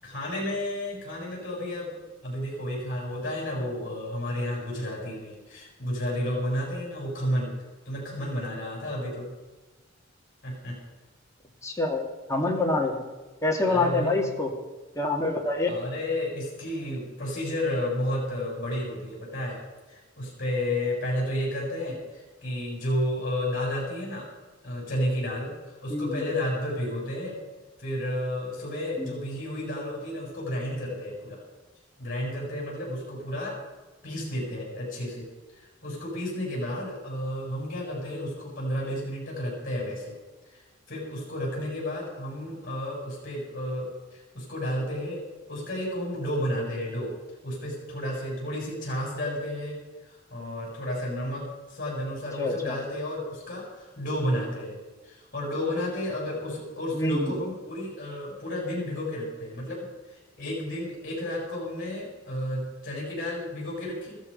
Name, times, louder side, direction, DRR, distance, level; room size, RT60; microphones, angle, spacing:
voice 1, 0.0-1.9 2.2-7.5 7.9-9.3 10.4-10.8 13.7-14.3 15.7-19.6 19.9-24.3 24.6-27.4 27.8-31.4 32.0-33.6 34.0-35.3 35.5-40.2 40.5-47.1 47.4-54.8 55.0-64.2, left 1 dB, 45° left, -3 dB, 7.0 m, -32 dB
voice 2, 11.6-12.9 13.4-14.5 15.0-15.7 25.9-26.2 29.0-29.1 52.4-52.8 56.9-57.3, left 2 dB, 15° left, 0 dB, 2.4 m, -26 dB
15.0 x 14.0 x 5.5 m, 1.2 s
head